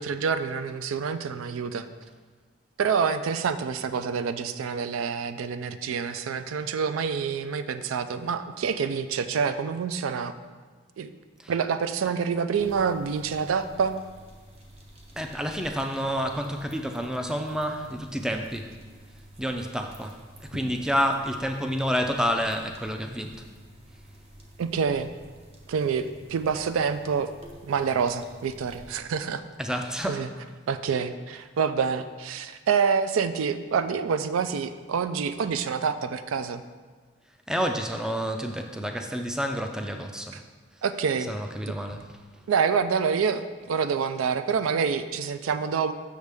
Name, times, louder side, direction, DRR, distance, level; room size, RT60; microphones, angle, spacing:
voice 1, 0.0-1.9 2.8-10.3 11.0-11.1 11.5-14.0 24.6-25.1 25.7-27.3 27.6-29.4 30.1-30.3 30.7-36.6 40.8-41.3 42.5-45.9, right 6 dB, 90° right, 11 dB, 0.4 m, -27 dB
sound 1, 12.6-29.0, equal, 30° right, 0.7 m, -49 dB
voice 2, 15.1-18.7 19.4-23.4 29.6-30.2 37.5-40.4 41.3-42.2, equal, 5° right, 4 dB, 0.3 m, -29 dB
6.6 x 6.3 x 3.4 m, 1.4 s
head